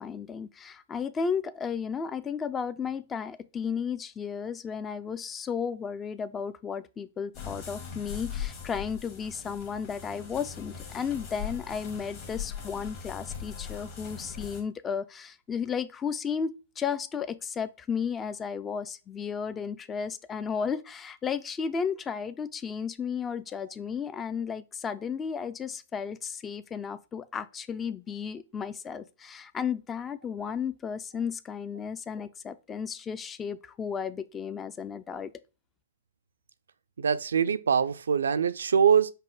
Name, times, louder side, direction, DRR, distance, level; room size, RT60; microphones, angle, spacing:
voice 1, 0.0-35.3, left 6 dB, 20° left, 0.3 m, -34 dB
sound 1, 7.3-14.6, left 7 dB, 40° left, 1.4 m, -40 dB
voice 2, 37.0-39.1, right 7 dB, 85° right, 0.3 m, -23 dB
5.3 x 2.0 x 3.9 m
hypercardioid pair, 130°, 0 cm